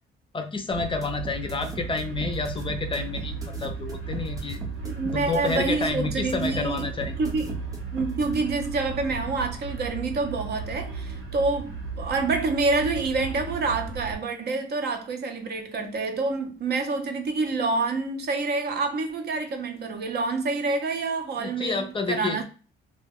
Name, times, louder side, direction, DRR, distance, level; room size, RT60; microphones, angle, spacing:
voice 1, 0.3-4.6 5.0-7.1 21.4-22.4, left 4 dB, 25° left, 0.4 m, -29 dB
Big diesel engine, 0.7-14.2, right 4 dB, 85° right, 0.9 m, -35 dB
sound 1, 0.8-8.4, right 1 dB, 15° right, 0.6 m, -39 dB
voice 2, 4.8-6.9 7.2-7.6 7.9-22.4, right 3 dB, 55° right, 0.6 m, -27 dB
2.2 x 2.1 x 3.5 m
cardioid pair, 90°, 20 cm